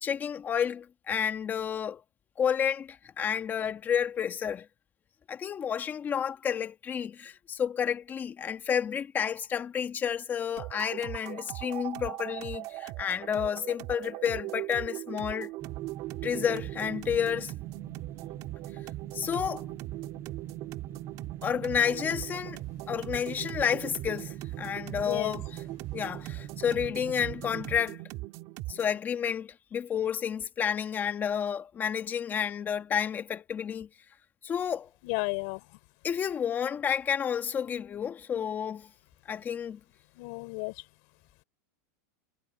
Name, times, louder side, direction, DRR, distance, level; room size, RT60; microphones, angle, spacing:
voice 1, 0.0-2.0 2.4-4.7 5.3-15.5 16.2-17.5 19.1-19.7 21.4-22.6 22.9-25.6 25.9-28.0 28.7-33.9 34.4-34.9 36.0-38.9 39.3-39.8, left 8 dB, 20° left, 1.7 m, -30 dB
sound 1, 10.6-29.0, right 19 dB, 40° right, 2.6 m, -40 dB
sound 2, 15.6-27.8, right 11 dB, 25° right, 7.7 m, -43 dB
voice 2, 24.9-25.4 35.0-35.7 40.2-40.7, left 31 dB, 50° left, 5.3 m, -33 dB
supercardioid pair, 150°, 9 cm